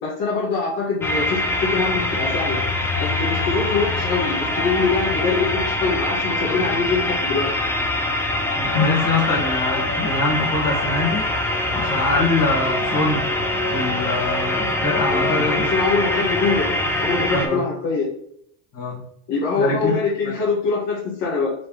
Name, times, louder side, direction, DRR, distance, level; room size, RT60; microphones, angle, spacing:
voice 1, 0.0-2.6 3.0-7.5 8.7-9.0 15.1-16.7 17.0-18.1 19.3-21.5, left 4 dB, 60° left, -6 dB, 1.7 m, -23 dB
sound 1, 1.0-17.5, left 1 dB, 5° left, 0.7 m, -23 dB
voice 2, 8.6-11.2 11.7-13.3 13.7-15.6 17.3-17.6 18.7-19.0 19.6-19.9 20.3-20.4, left 2 dB, 45° left, -2 dB, 1.9 m, -24 dB
4.8 x 3.5 x 3.0 m, 0.68 s
supercardioid pair, 95°, 47 cm